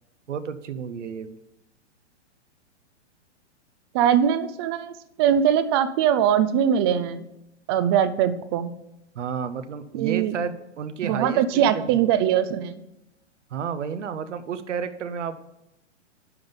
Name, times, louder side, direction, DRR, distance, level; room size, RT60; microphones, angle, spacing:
voice 1, 0.3-1.4 9.1-12.0 13.5-15.4, right 7 dB, 80° right, 11 dB, 0.9 m, -31 dB
voice 2, 3.9-4.9 5.2-7.2 7.7-8.7 10.0-10.4 11.0-12.8, right 9 dB, 20° right, 13 dB, 0.4 m, -21 dB
11.0 x 3.9 x 6.9 m, 0.88 s
hypercardioid pair, 135°, 36 cm